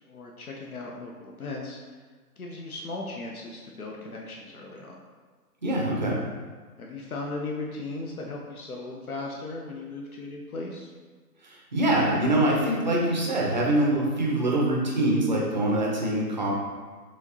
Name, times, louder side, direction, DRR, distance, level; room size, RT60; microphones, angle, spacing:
voice 1, 0.1-1.8 2.4-5.0 6.8-10.9, left 2 dB, 65° left, -1 dB, 0.7 m, -37 dB
voice 2, 5.6-6.2 11.4-16.5, right 1 dB, 30° right, -3 dB, 0.6 m, -24 dB
4.8 x 3.0 x 2.8 m, 1.4 s
figure-of-eight pair, 140°, 48 cm